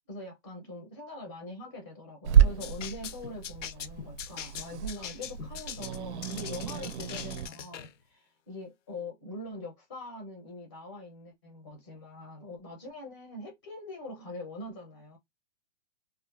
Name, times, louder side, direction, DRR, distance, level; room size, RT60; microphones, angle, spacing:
voice 1, 0.1-15.2, left 1 dB, 20° left, 0.5 m, -43 dB
Growling / Hiss, 2.2-7.5, right 8 dB, 65° right, 0.5 m, -29 dB
sound 1, 2.6-7.9, left 8 dB, 80° left, 0.5 m, -42 dB
2.5 x 2.3 x 2.3 m
hypercardioid pair, 155°, 37 cm